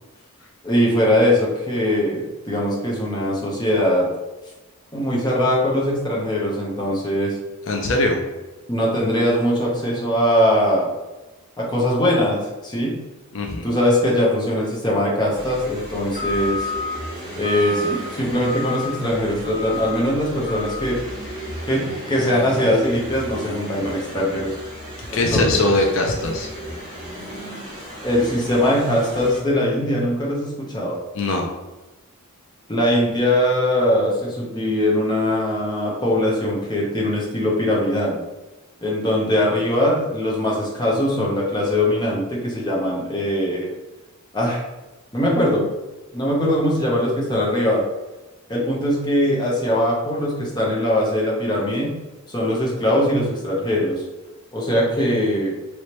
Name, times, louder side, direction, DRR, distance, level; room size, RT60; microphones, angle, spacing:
voice 1, 0.6-4.1 4.9-7.4 8.7-10.9 11.6-12.9 13.6-16.7 17.4-21.0 21.7-21.8 22.1-24.6 25.1-25.7 28.0-31.0 32.7-38.1 38.8-43.7 44.3-44.6 45.1-45.6 46.1-47.8 48.5-51.9 52.3-54.0 54.5-55.6, left 1 dB, 20° left, -4 dB, 0.7 m, -21 dB
voice 2, 7.7-8.2 13.3-13.7 25.1-26.5 31.1-31.5, left 2 dB, 60° left, 1 dB, 0.4 m, -21 dB
sound 1, 15.3-29.4, left 1 dB, 20° right, 1.5 m, -33 dB
3.1 x 3.1 x 2.9 m, 1.1 s
head